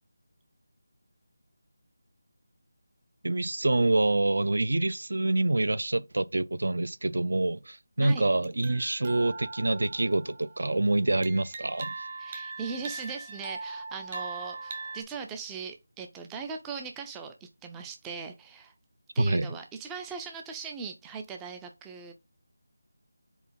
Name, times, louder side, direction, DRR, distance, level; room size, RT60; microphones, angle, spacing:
voice 1, 3.2-11.9 19.2-19.5, right 2 dB, 65° right, 0.5 m, -26 dB
sound 1, 8.4-10.7 11.2-15.0, right 3 dB, 20° right, 0.8 m, -40 dB
voice 2, 12.2-18.7 19.1-22.1, right 5 dB, 5° right, 0.4 m, -39 dB
4.7 x 4.1 x 5.6 m
figure-of-eight pair, 175°, 0 cm